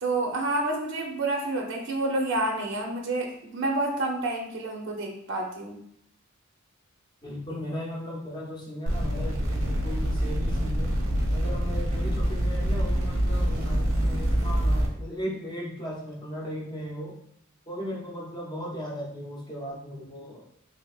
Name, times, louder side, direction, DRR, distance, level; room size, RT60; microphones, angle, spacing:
voice 1, 0.0-5.8, right 2 dB, 60° right, 0 dB, 0.7 m, -29 dB
voice 2, 7.2-10.9 11.3-17.2 17.7-20.5, equal, 20° left, -3 dB, 0.7 m, -37 dB
sound 1, 8.9-14.9, equal, 90° right, 1.0 m, -26 dB
3.4 x 3.3 x 2.4 m, 0.70 s
head